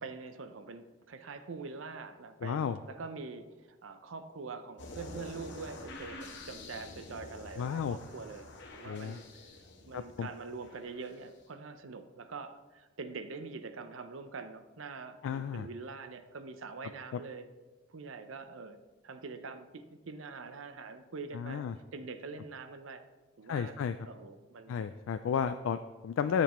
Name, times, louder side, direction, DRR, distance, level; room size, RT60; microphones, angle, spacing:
voice 1, 0.0-8.5 8.7-9.5 9.9-17.5 17.9-18.8 19.0-21.7 21.9-23.0 23.4-23.8 24.1-24.8, right 4 dB, 80° right, 9 dB, 0.6 m, -44 dB
voice 2, 2.4-2.8 7.6-8.0 8.9-9.2 9.9-10.3 15.2-15.7 17.1-17.2 21.3-21.7 23.5-24.0 24.7-26.4, left 7 dB, 85° left, 10 dB, 0.3 m, -32 dB
sound 1, 4.8-11.4, left 2 dB, 60° left, 1.1 m, -48 dB
10.0 x 6.9 x 3.1 m, 1.2 s
head